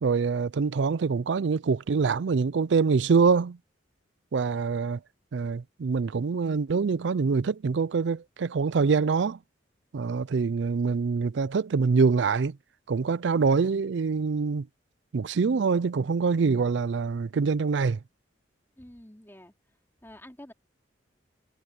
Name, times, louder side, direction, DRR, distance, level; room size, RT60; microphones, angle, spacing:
voice 1, 0.0-3.6 4.3-5.0 5.3-9.4 9.9-12.6 12.9-14.7 15.1-18.0, right 5 dB, 70° right, 0.4 m, -25 dB
voice 2, 18.8-19.5 20.0-20.5, left 1 dB, 10° left, 3.6 m, -48 dB
head